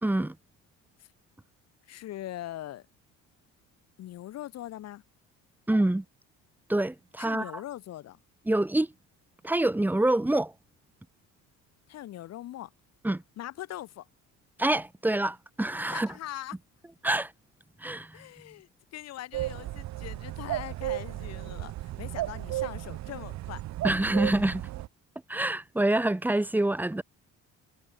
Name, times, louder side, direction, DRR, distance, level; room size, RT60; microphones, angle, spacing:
voice 1, 0.0-0.4 5.7-6.0 6.7-7.5 8.5-8.9 9.4-10.5 13.0-13.2 14.6-16.1 17.0-17.3 17.8-18.1 23.8-24.7 25.3-27.0, right 1 dB, 5° right, 5.5 m, -26 dB
voice 2, 1.9-2.9 4.0-5.0 7.2-8.2 11.9-12.7 13.4-14.1 15.9-16.6 18.1-23.6, left 13 dB, 55° left, 6.4 m, -41 dB
sound 1, 19.3-24.9, right 15 dB, 60° right, 4.2 m, -34 dB
cardioid pair, 160°, 31 cm